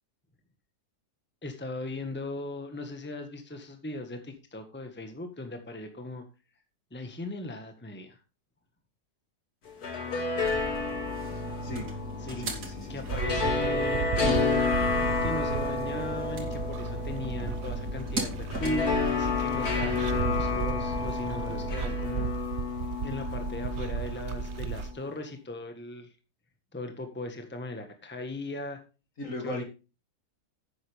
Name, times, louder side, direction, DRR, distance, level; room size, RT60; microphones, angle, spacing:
voice 1, 1.4-6.2 6.9-8.2 12.2-12.5 12.9-14.8 15.2-22.3 23.0-26.1 26.7-28.8 29.4-29.6, left 1 dB, 5° left, 6 dB, 1.4 m, -38 dB
sound 1, 9.7-24.8, left 4 dB, 75° left, 2.5 m, -31 dB
sound 2, 10.4-21.9, equal, 80° right, 3.3 m, -37 dB
voice 2, 12.4-13.1 22.0-22.3 29.2-29.6, left 2 dB, 55° left, 4 dB, 2.8 m, -38 dB
sound 3, 13.0-24.9, right 7 dB, 55° right, 0.9 m, -35 dB
11.0 x 9.0 x 3.4 m, 0.31 s
omnidirectional pair, 1.6 m